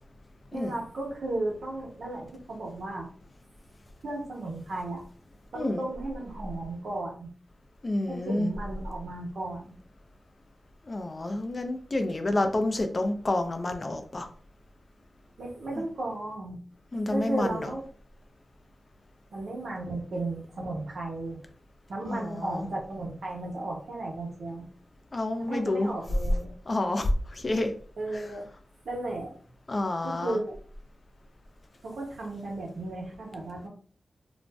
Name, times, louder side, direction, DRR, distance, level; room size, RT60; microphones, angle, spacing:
voice 1, 0.5-3.1 4.0-5.0 5.5-7.3 8.1-9.8 15.4-16.6 17.1-17.8 19.3-21.4 21.9-24.7 25.4-26.5 28.0-28.4 28.8-29.4 30.0-30.5 31.8-33.7, right 2 dB, 85° right, -1 dB, 0.9 m, -34 dB
voice 2, 7.8-8.5 10.8-14.3 16.9-17.7 22.1-22.7 25.1-25.9 26.7-27.7 28.1-28.3 29.7-30.4, left 2 dB, 35° left, 6 dB, 0.4 m, -29 dB
2.5 x 2.0 x 3.3 m, 0.43 s
wide cardioid pair, 155°, 0 cm